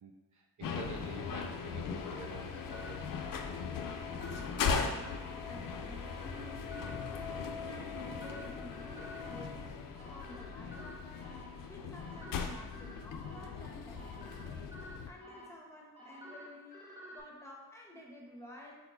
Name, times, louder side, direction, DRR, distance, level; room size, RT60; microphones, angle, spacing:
voice 1, 0.0-3.1, right 4 dB, 50° right, 2 dB, 0.5 m, -48 dB
sound 1, 0.6-15.1, left 5 dB, 60° left, 0.5 m, -39 dB
sound 2, 1.2-17.2, equal, 15° right, 1.4 m, -52 dB
voice 2, 4.1-11.4 11.7-14.7 15.1-16.8 17.1-18.7, left 1 dB, 5° left, -2 dB, 1.2 m, -52 dB
4.3 x 4.2 x 2.7 m, 1.2 s
supercardioid pair, 40°, 38 cm